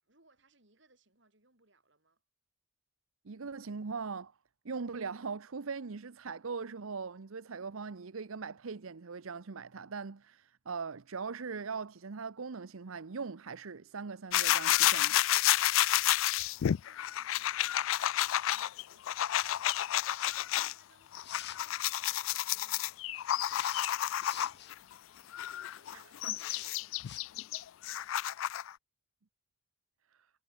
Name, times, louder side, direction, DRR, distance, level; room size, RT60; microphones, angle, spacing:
voice 1, 0.0-2.2 16.3-19.4 20.5-21.1 21.5-22.9 25.1-27.1, right 2 dB, 55° right, 4.6 m, -69 dB
voice 2, 3.2-4.3 4.6-15.2 25.3-25.4 25.9-26.4, right 5 dB, 80° right, 0.7 m, -40 dB
sound 1, 14.3-20.7 21.1-24.7 25.3-28.7, left 13 dB, 70° left, 0.3 m, -30 dB
sound 2, 21.0-21.7 23.5-24.7 26.3-26.7 27.0-27.2, left 12 dB, 50° left, 1.3 m, -47 dB
head